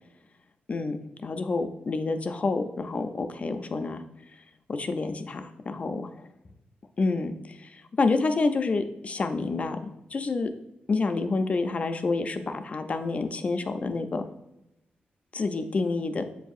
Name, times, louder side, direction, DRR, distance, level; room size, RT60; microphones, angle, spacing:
voice 1, 0.7-4.0 4.7-6.3 7.0-7.3 7.6-10.5 10.9-14.2 15.3-16.2, left 3 dB, 35° left, 7 dB, 0.3 m, -28 dB
6.9 x 2.6 x 2.4 m, 0.87 s
wide cardioid pair, 115°, 4 cm